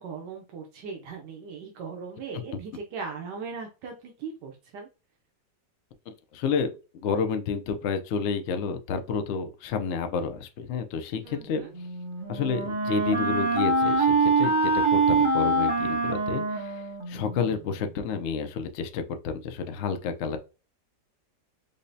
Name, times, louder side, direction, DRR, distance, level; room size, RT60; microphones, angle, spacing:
voice 1, 0.0-4.9 11.2-11.7, right 5 dB, 90° right, 1.3 m, -39 dB
voice 2, 6.1-6.7 7.0-11.6 12.3-20.4, left 5 dB, 80° left, 0.6 m, -30 dB
Wind instrument woodwind instrument, 11.7-17.5, right 3 dB, 40° right, 0.4 m, -24 dB
5.2 x 2.0 x 2.6 m
omnidirectional pair, 1.8 m